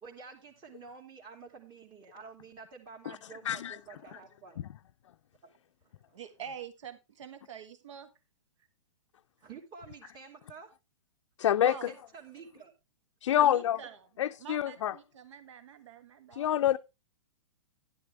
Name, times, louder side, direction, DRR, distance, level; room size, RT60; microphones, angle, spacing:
voice 1, 0.0-4.6 9.4-10.7 11.9-12.7, right 5 dB, 30° right, 2.7 m, -49 dB
voice 2, 3.4-3.8 11.4-11.9 13.2-13.8 14.2-14.9 16.3-16.8, left 11 dB, 70° left, 0.5 m, -26 dB
voice 3, 6.1-8.1 11.6-11.9 13.3-14.0 14.4-16.5, right 7 dB, 70° right, 1.7 m, -45 dB
11.0 x 10.5 x 3.3 m
hypercardioid pair, 125°, 16 cm